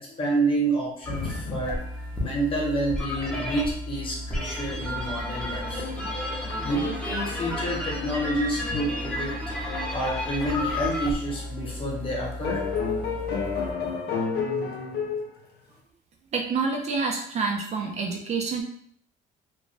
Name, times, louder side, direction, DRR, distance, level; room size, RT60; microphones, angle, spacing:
voice 1, 0.0-1.8 2.2-5.9 6.6-9.3 9.9-12.6, right 1 dB, 30° left, -3 dB, 1.0 m, -28 dB
sound 1, 1.0-13.7, left 1 dB, 5° left, 0.7 m, -33 dB
sound 2, 1.1-1.8 2.1-2.3 2.6-2.7 2.9-3.3 4.3-4.4 4.7-11.1 11.7-11.8 12.4-15.3, left 5 dB, 70° left, 0.6 m, -33 dB
voice 2, 16.3-18.6, right 4 dB, 40° right, 1 dB, 0.5 m, -27 dB
2.5 x 2.2 x 3.2 m, 0.66 s
cardioid pair, 110°, 17 cm